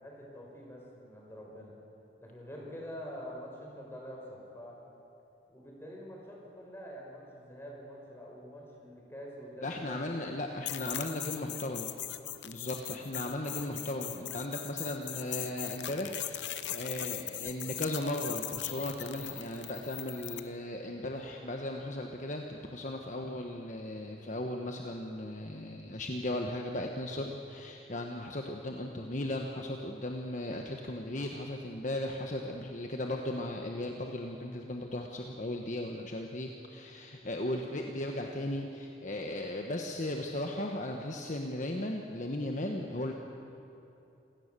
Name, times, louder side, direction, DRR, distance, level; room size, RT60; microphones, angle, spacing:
voice 1, 0.0-1.7 2.2-4.8 5.5-10.3 10.7-11.1 11.8-12.0, equal, 15° left, -2 dB, 5.1 m, -46 dB
voice 2, 9.6-11.9 12.4-43.1, left 1 dB, 45° left, 2 dB, 1.3 m, -36 dB
sound 1, 10.7-20.5, left 13 dB, 90° left, 0.9 m, -40 dB
28.0 x 17.5 x 6.9 m, 2.9 s
head